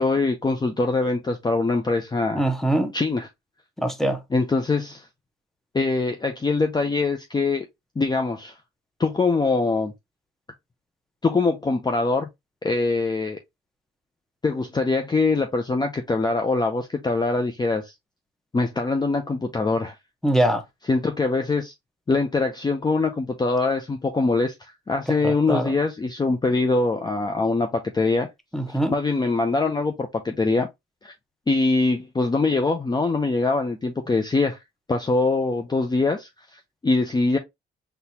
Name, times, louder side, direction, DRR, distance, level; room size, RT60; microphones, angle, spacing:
voice 1, 0.0-2.4 2.9-3.3 4.3-5.1 5.7-7.6 8.0-8.6 9.0-9.9 11.2-12.3 12.6-13.4 14.4-17.9 18.5-19.9 20.9-21.7 22.1-28.3 28.7-30.7 31.0-31.1 31.5-34.6 34.9-37.4, left 3 dB, 20° left, 0.6 m, -23 dB
voice 2, 2.3-2.9 3.8-4.2 20.2-20.6 25.2-25.7 28.5-28.9, right 1 dB, ahead, 1.0 m, -22 dB
4.0 x 3.4 x 2.8 m
cardioid pair, 90°, 20 cm